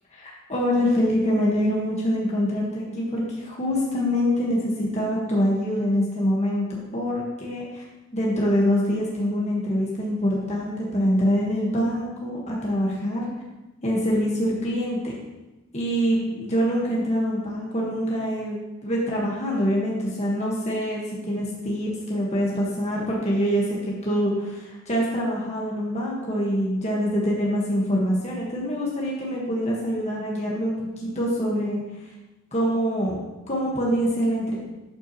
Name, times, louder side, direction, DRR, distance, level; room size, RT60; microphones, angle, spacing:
voice 1, 0.1-6.7 6.9-7.8 8.1-13.2 13.8-15.1 15.7-23.8 24.0-31.8 32.5-33.2 33.5-34.5, equal, 30° left, -4 dB, 1.5 m, -25 dB
11.5 x 5.8 x 3.0 m, 1.0 s
head